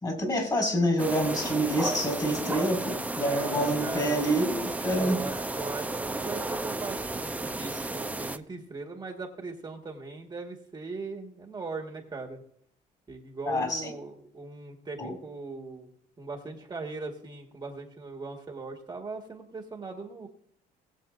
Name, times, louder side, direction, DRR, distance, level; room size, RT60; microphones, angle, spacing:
voice 1, 0.0-5.2 13.5-13.9 15.0-15.2, equal, 25° left, 3 dB, 4.7 m, -27 dB
sound 1, 1.0-8.4, right 2 dB, 10° right, 0.6 m, -33 dB
voice 2, 3.3-4.3 5.0-12.4 13.1-15.9 16.2-20.3, right 3 dB, 25° right, 1 dB, 1.7 m, -39 dB
20.5 x 7.5 x 2.6 m, 0.70 s
cardioid pair, 110°, 17 cm